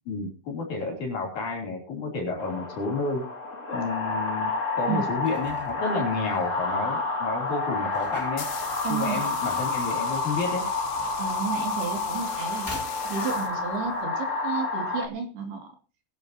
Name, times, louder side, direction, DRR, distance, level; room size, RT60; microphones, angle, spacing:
voice 1, 0.1-3.3 3.7-8.5 8.9-10.6, left 3 dB, 45° left, 1 dB, 4.3 m, -30 dB
sound 1, 2.4-15.1, left 3 dB, 60° left, 0.7 m, -29 dB
sound 2, 5.1-13.6, left 1 dB, 5° left, 1.8 m, -48 dB
sound 3, 8.0-14.0, left 9 dB, 90° left, 4.1 m, -41 dB
voice 2, 8.8-9.2 11.2-12.7 13.0-15.7, right 6 dB, 60° right, 3 dB, 4.2 m, -32 dB
22.5 x 11.0 x 2.9 m, 0.32 s
omnidirectional pair, 5.5 m